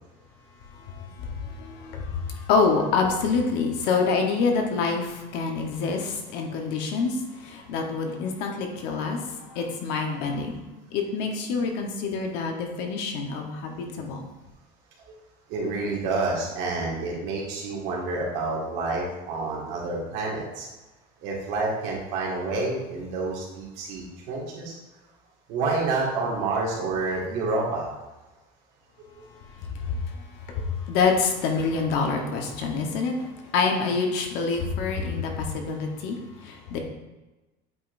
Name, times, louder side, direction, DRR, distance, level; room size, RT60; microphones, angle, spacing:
voice 1, 0.9-10.6 10.9-14.3 29.6-36.8, left 4 dB, 55° left, 2 dB, 1.1 m, -27 dB
voice 2, 15.5-20.7 21.2-24.7 25.5-27.9 29.2-29.3 30.5-30.6, right 3 dB, 60° right, -3 dB, 2.0 m, -28 dB
8.4 x 5.1 x 2.6 m, 1.1 s
cardioid pair, 180°, 20 cm